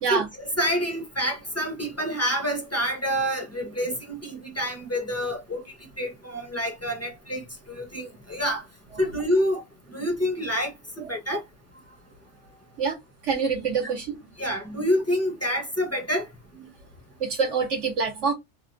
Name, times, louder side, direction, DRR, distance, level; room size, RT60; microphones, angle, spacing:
voice 1, 0.1-8.6 9.0-9.6 9.9-11.4 14.4-16.3, equal, 15° left, 0.6 m, -27 dB
voice 2, 13.2-14.2 17.2-18.3, right 5 dB, 70° right, 1.1 m, -25 dB
3.6 x 2.0 x 2.6 m
omnidirectional pair, 1.3 m